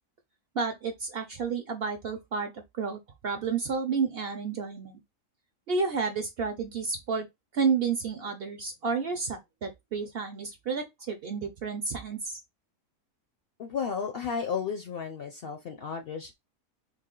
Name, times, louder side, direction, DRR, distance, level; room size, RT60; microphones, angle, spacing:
voice 1, 0.5-5.0 5.7-7.3 7.5-12.4, right 5 dB, 60° right, 0.7 m, -31 dB
voice 2, 13.6-16.3, left 6 dB, 60° left, 0.6 m, -33 dB
3.3 x 2.4 x 3.7 m
omnidirectional pair, 1.4 m